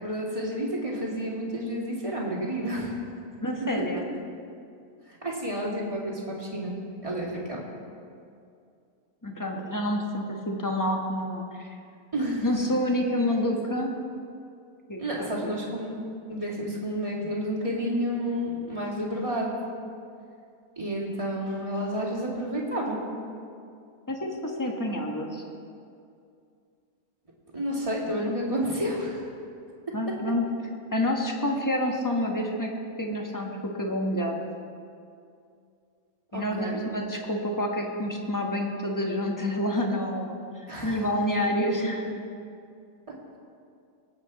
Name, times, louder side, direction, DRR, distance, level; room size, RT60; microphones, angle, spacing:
voice 1, 0.0-3.0 5.2-6.7 7.0-7.6 12.1-12.6 15.0-16.0 16.3-19.5 20.8-23.0 27.5-29.2 36.3-36.8 40.7-41.0, equal, 20° right, -4 dB, 2.3 m, -30 dB
voice 2, 3.4-4.1 9.2-11.7 12.4-14.0 14.9-15.5 24.1-25.4 29.9-30.4 30.9-32.7 33.0-34.4 36.3-40.4 40.8-42.2, left 1 dB, 15° left, 1 dB, 1.1 m, -28 dB
19.0 x 8.4 x 4.2 m, 2.4 s
omnidirectional pair, 1.6 m